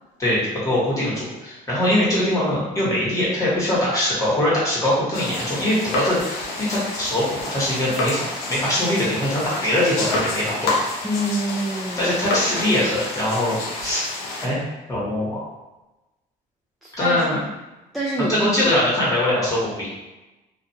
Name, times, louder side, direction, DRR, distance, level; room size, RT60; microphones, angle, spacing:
voice 1, 0.2-10.7 12.0-14.0 14.4-14.6 14.9-15.4 17.0-17.4 18.3-19.9, left 1 dB, 20° left, -7 dB, 1.3 m, -22 dB
sound 1, 5.1-14.5, left 2 dB, 75° left, 0.7 m, -29 dB
voice 2, 11.0-12.1 16.8-17.4 17.9-18.5, right 1 dB, ahead, -5 dB, 0.4 m, -26 dB
2.5 x 2.4 x 2.8 m, 1.0 s
cardioid pair, 110°, 17 cm